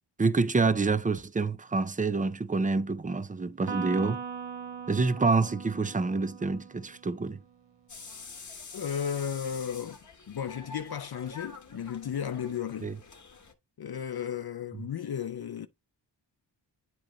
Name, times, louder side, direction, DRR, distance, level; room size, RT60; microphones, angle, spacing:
voice 1, 0.2-4.2 4.9-7.4 12.8-12.9, right 3 dB, 20° right, 0.4 m, -27 dB
Electric guitar, 3.7-7.2, right 6 dB, 75° right, 0.9 m, -40 dB
sound 1, 7.9-13.5, left 4 dB, 40° left, 1.1 m, -47 dB
voice 2, 8.7-12.9 13.8-15.7, left 8 dB, 55° left, 0.6 m, -34 dB
8.8 x 3.0 x 3.8 m
wide cardioid pair, 75°, 44 cm